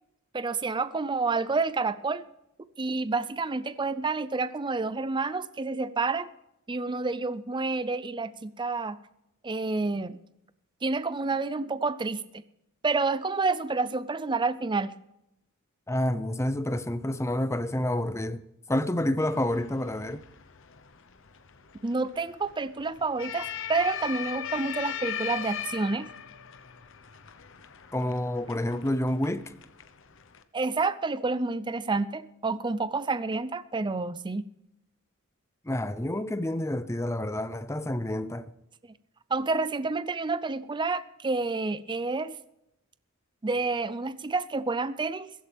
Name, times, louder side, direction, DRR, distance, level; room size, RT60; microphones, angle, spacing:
voice 1, 0.3-2.2 2.8-6.3 6.7-9.0 9.4-10.2 10.8-12.4 12.8-14.9 21.8-26.1 30.5-34.4 39.3-42.4 43.4-45.3, right 3 dB, 20° right, 0.5 m, -29 dB
voice 2, 15.9-18.4 18.7-20.2 27.9-29.4 35.6-38.5, left 1 dB, 15° left, 0.7 m, -28 dB
sound 1, 19.2-30.4, left 9 dB, 65° left, 1.0 m, -39 dB
15.5 x 15.0 x 3.5 m
head